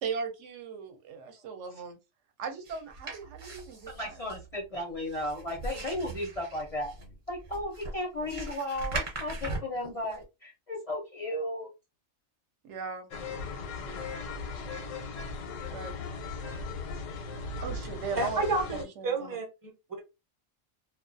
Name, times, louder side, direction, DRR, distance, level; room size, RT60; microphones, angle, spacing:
voice 1, 0.0-2.0 2.4-4.2 12.6-13.1 13.8-14.1 15.7-15.9 17.2-18.6 19.0-19.4, right 5 dB, 70° right, 0.8 m, -38 dB
sound 1, 2.6-10.2, right 2 dB, 45° right, 0.8 m, -40 dB
voice 2, 3.9-6.9 7.3-11.7, left 1 dB, 40° left, 0.5 m, -35 dB
sound 2, 13.1-18.8, left 4 dB, 85° left, 1.0 m, -38 dB
voice 3, 18.1-20.0, right 3 dB, 25° right, 0.5 m, -31 dB
2.3 x 2.2 x 2.5 m
omnidirectional pair, 1.3 m